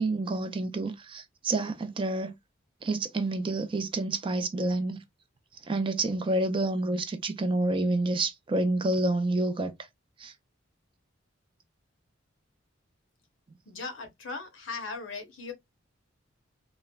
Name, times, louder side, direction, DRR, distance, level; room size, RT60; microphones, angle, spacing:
voice 1, 0.0-2.3 2.8-5.0 5.7-9.7 10.2-10.3, right 2 dB, 25° right, 0.4 m, -28 dB
voice 2, 13.7-15.5, left 4 dB, 70° left, 0.8 m, -38 dB
3.1 x 2.1 x 2.3 m
head